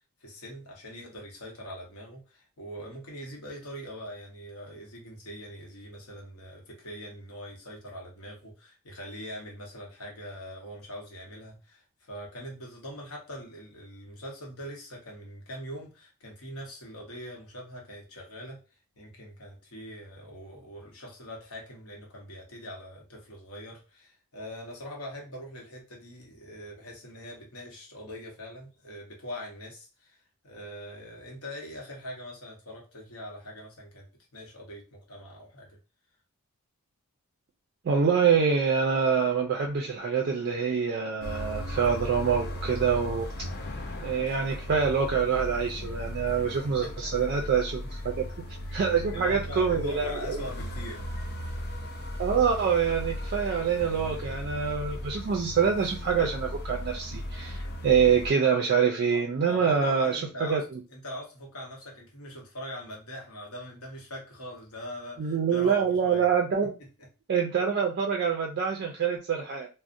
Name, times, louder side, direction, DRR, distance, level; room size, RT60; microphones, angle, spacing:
voice 1, 0.2-18.6 19.0-30.2 30.4-34.1 34.3-35.7 46.8-46.9 47.2-47.3 48.7-51.2 59.1-66.3, equal, 70° left, 0 dB, 0.9 m, -42 dB
voice 2, 37.8-43.3 44.0-48.2 48.7-50.4 52.2-60.6 65.2-66.7 67.3-69.7, right 6 dB, 45° right, 2 dB, 0.3 m, -26 dB
sound 1, 41.2-58.3, equal, 45° left, 0.5 m, -37 dB
2.5 x 2.0 x 2.5 m, 0.33 s
head